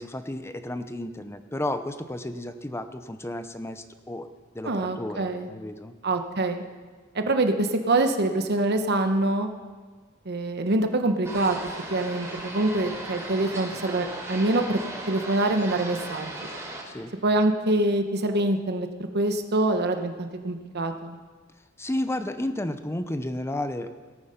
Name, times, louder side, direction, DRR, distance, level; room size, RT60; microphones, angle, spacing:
voice 1, 0.0-4.3 4.5-5.9 16.9-17.1 21.8-23.9, left 1 dB, 15° left, 9 dB, 0.7 m, -32 dB
voice 2, 4.6-5.5 6.0-6.6 7.1-9.5 10.2-11.6 11.9-14.8 15.1-16.3 17.2-18.9 19.1-21.2, right 2 dB, 55° right, 6 dB, 1.1 m, -25 dB
sound 1, 11.2-16.8, right 2 dB, 15° right, 3.3 m, -37 dB
18.0 x 8.9 x 5.7 m, 1.4 s
head